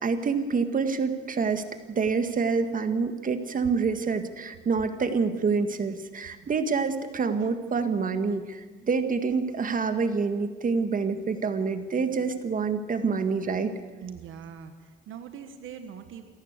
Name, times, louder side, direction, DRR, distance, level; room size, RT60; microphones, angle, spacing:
voice 1, 0.0-13.7, right 5 dB, 45° right, 9 dB, 1.8 m, -27 dB
voice 2, 14.0-16.2, right 7 dB, 80° right, 8 dB, 1.5 m, -42 dB
28.0 x 11.5 x 8.2 m, 1.4 s
cardioid pair, 90°, 20 cm